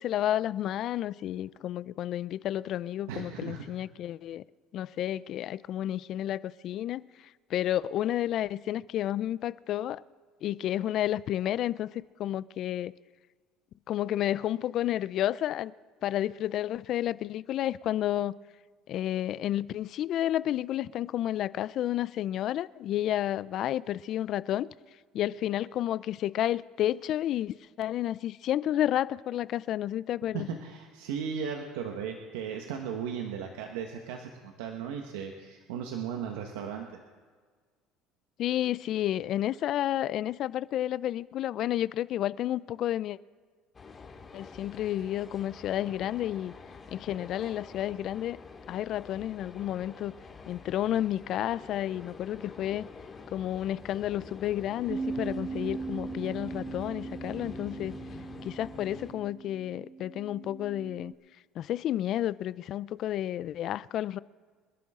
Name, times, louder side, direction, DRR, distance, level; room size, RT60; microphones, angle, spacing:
voice 1, 0.0-4.4 4.7-7.1 7.5-10.0 10.4-12.9 13.9-15.7 16.0-18.3 18.9-24.7 25.1-30.5 38.4-43.2 44.3-46.5 46.9-48.4 48.7-50.1 50.5-52.9 53.3-57.9 58.4-61.1 61.6-64.2, left 12 dB, 55° left, 0.4 m, -31 dB
voice 2, 3.1-3.6 30.3-36.9, right 7 dB, 85° right, 1.4 m, -36 dB
sound 1, 43.7-59.1, left 4 dB, 30° left, 2.1 m, -46 dB
Bass guitar, 54.9-61.1, right 4 dB, 40° right, 1.3 m, -39 dB
27.5 x 11.5 x 3.8 m
supercardioid pair, 95°, 0 cm